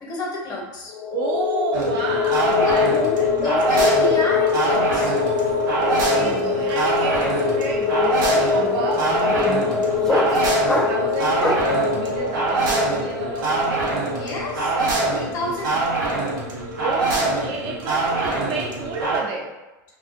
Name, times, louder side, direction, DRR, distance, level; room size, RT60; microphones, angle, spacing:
voice 1, 0.0-0.9 2.6-5.2 14.1-15.9, left 2 dB, 40° left, -2 dB, 0.9 m, -29 dB
sound 1, 0.9-15.2, left 5 dB, 65° left, 0.7 m, -23 dB
voice 2, 1.1-2.9 3.2-3.3 5.7-13.9 16.8-19.6, right 3 dB, 50° right, 0 dB, 0.6 m, -30 dB
sound 2, 1.7-19.2, right 2 dB, 85° right, 0.8 m, -24 dB
sound 3, 5.3-5.4 5.6-11.8, left 1 dB, 5° left, 0.3 m, -28 dB
2.4 x 2.3 x 2.5 m, 1.1 s
hypercardioid pair, 100°, 10 cm